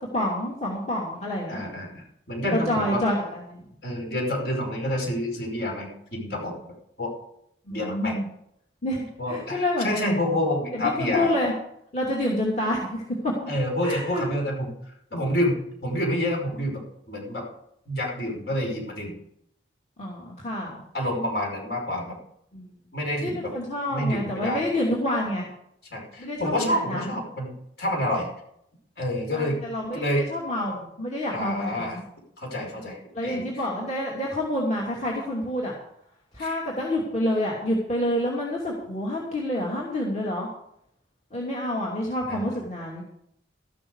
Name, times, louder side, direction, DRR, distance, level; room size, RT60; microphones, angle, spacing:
voice 1, 0.1-1.6 2.5-3.6 7.7-8.2 8.8-10.4 10.7-11.5 11.9-13.3 13.8-14.2 20.0-20.8 22.5-22.7 23.2-25.4 26.2-27.1 29.3-32.0 33.1-35.7 36.3-40.5 41.3-43.0, left 1 dB, 40° left, -4 dB, 2.8 m, -28 dB
voice 2, 1.5-3.0 3.8-6.7 7.0-7.1 7.7-8.2 9.2-11.3 13.5-14.7 15.1-17.5 17.9-19.1 20.9-22.2 22.9-23.5 23.9-24.7 25.9-28.3 29.0-29.6 29.9-30.3 31.3-32.0 32.4-33.5 36.4-36.6 42.3-42.5, left 1 dB, 65° left, 0 dB, 5.2 m, -28 dB
14.0 x 12.5 x 4.9 m, 0.74 s
head